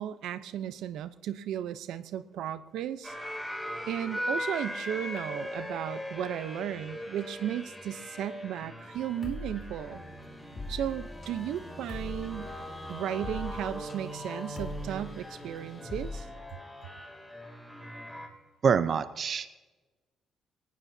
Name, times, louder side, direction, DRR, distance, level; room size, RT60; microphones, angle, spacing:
voice 1, 0.0-3.1 3.9-10.0 10.7-12.5 12.9-16.3, right 10 dB, 80° right, 12 dB, 0.7 m, -35 dB
sound 1, 3.0-18.3, equal, ahead, 2.9 m, -40 dB
Dark Chillout (loop), 8.9-16.2, left 2 dB, 25° left, 2.6 m, -42 dB
voice 2, 18.6-19.5, right 6 dB, 45° right, 12 dB, 0.7 m, -25 dB
22.5 x 19.0 x 2.8 m, 1.2 s
cardioid pair, 140°, 0 cm